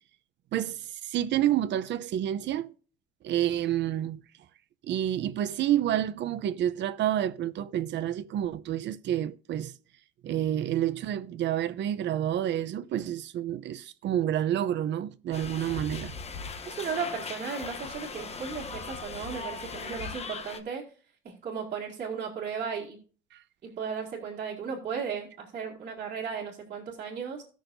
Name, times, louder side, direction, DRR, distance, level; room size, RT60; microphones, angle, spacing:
voice 1, 0.5-2.7 3.2-4.2 4.9-9.7 10.2-16.1 23.3-23.4, right 11 dB, 65° right, 0.8 m, -29 dB
sound 1, 15.3-20.6, left 4 dB, 30° left, 0.9 m, -39 dB
voice 2, 16.7-20.8 21.2-23.0 23.6-27.4, right 6 dB, 40° right, 2.5 m, -35 dB
18.0 x 6.4 x 2.7 m
cardioid pair, 155°, 20 cm